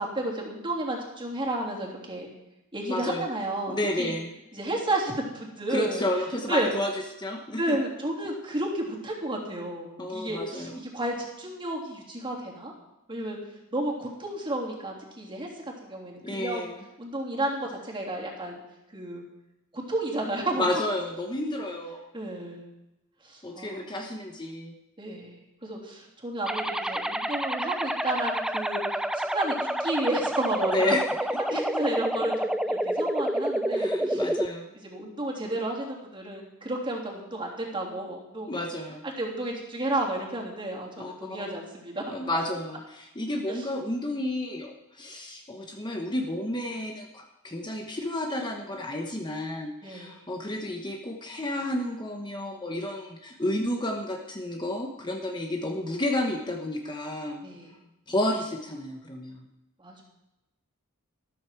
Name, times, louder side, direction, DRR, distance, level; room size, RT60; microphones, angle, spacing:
voice 1, 0.0-2.3 2.7-4.1 4.5-6.0 6.5-6.7 7.6-12.7 13.1-13.4 13.7-15.5 15.8-16.6 17.0-18.6 18.9-19.2 19.7-20.6 22.1-22.7 23.2-24.0 25.0-31.0 31.5-34.2 34.7-38.5 39.0-42.1 43.5-43.6 49.8-50.2 57.4-57.8 59.8-60.0, right 1 dB, 25° right, -2 dB, 3.2 m, -32 dB
voice 2, 2.9-3.2 3.7-4.3 5.7-6.9 7.2-7.8 10.0-10.8 16.2-16.7 20.5-22.2 23.4-24.7 30.6-31.0 31.5-31.8 33.7-34.7 38.5-39.0 41.0-41.5 42.1-57.4 58.1-59.4, left 1 dB, 20° left, 2 dB, 1.1 m, -31 dB
sound 1, 26.5-34.5, right 1 dB, 5° right, 0.5 m, -28 dB
13.5 x 13.0 x 4.6 m, 0.94 s
head